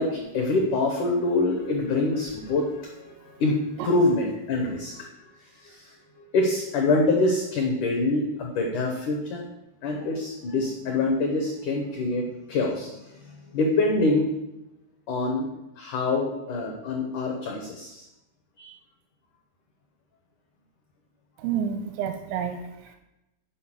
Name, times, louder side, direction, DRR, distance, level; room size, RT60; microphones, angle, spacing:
voice 1, 0.0-9.4 9.8-14.3 15.1-15.5 15.8-18.0 18.6-18.7, left 2 dB, 80° left, 1 dB, 1.8 m, -26 dB
voice 2, 21.4-23.0, right 8 dB, 85° right, 5 dB, 2.9 m, -30 dB
8.5 x 5.0 x 7.4 m, 0.94 s
omnidirectional pair, 5.3 m